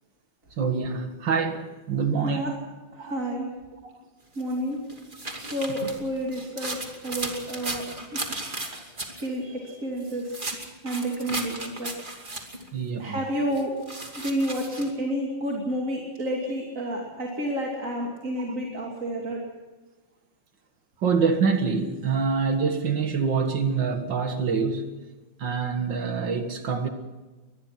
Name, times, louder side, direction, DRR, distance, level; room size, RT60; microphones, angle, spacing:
voice 1, 0.6-2.6 3.0-3.2 3.8-3.9 5.4-5.5 12.7-13.2 21.0-24.9 25.4-26.9, right 5 dB, 70° right, 2.4 m, -26 dB
voice 2, 2.9-3.5 4.4-4.8 5.3-7.8 8.1-8.2 9.1-10.4 10.8-11.9 13.0-13.7 14.2-19.4, equal, 40° right, 3.2 m, -30 dB
sound 1, 4.4-9.3 10.0-12.7 13.6-14.9, right 2 dB, 25° right, 2.7 m, -35 dB
23.0 x 20.0 x 5.9 m
omnidirectional pair, 2.1 m